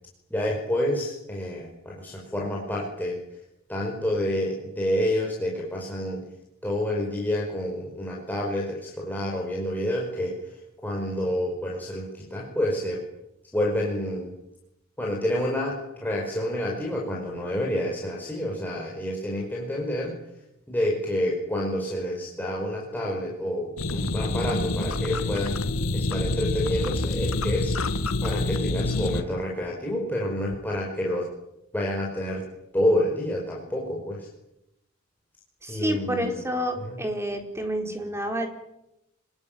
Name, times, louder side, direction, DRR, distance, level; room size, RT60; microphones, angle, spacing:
voice 1, 0.3-3.2 3.7-6.2 6.6-10.4 10.8-13.0 13.5-14.3 15.0-20.1 20.7-25.6 25.9-27.7 28.2-31.3 31.7-32.4 32.7-34.3 35.7-36.4 36.8-37.0, left 1 dB, 10° left, -3 dB, 5.2 m, -28 dB
sound 1, 23.8-29.2, left 2 dB, 85° left, 1.9 m, -27 dB
voice 2, 35.6-38.5, equal, 15° right, 5 dB, 4.2 m, -29 dB
26.0 x 21.0 x 9.3 m, 0.87 s
head